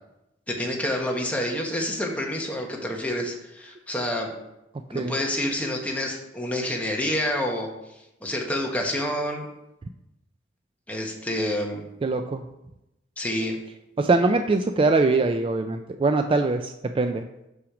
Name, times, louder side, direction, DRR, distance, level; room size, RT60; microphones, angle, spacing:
voice 1, 0.5-4.3 4.9-7.7 8.2-9.4 10.9-11.9 13.2-13.6, left 1 dB, 10° left, 0 dB, 1.2 m, -28 dB
voice 2, 12.0-12.4 14.0-17.2, right 3 dB, 30° right, 7 dB, 0.3 m, -22 dB
6.4 x 5.8 x 5.0 m, 0.90 s
head